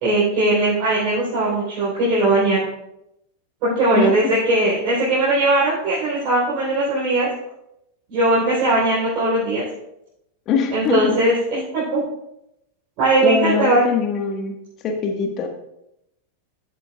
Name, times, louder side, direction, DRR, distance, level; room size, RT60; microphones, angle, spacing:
voice 1, 0.0-2.6 3.6-7.3 8.1-9.6 10.7-12.0 13.0-13.8, right 2 dB, 45° right, -7 dB, 3.7 m, -19 dB
voice 2, 3.9-4.3 10.5-11.2 13.2-14.6 14.8-15.5, left 5 dB, 35° left, 3 dB, 1.5 m, -22 dB
14.0 x 7.6 x 2.4 m, 0.83 s
figure-of-eight pair, 90°, 0 cm